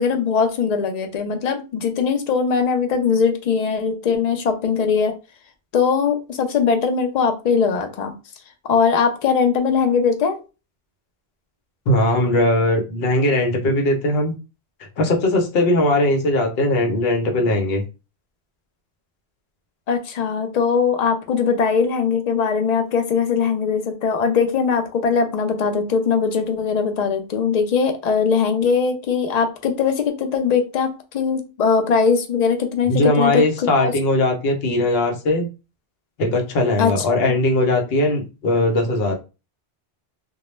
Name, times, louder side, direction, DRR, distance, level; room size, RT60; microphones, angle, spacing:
voice 1, 0.0-5.1 5.7-8.1 8.6-10.4 19.9-33.4 33.8-33.9 36.8-37.4, left 6 dB, 55° left, 5 dB, 0.5 m, -20 dB
voice 2, 11.9-14.3 15.0-17.8 32.9-35.5 36.2-39.2, left 1 dB, 70° left, 3 dB, 0.9 m, -19 dB
2.2 x 2.0 x 3.0 m, 0.30 s
omnidirectional pair, 1.1 m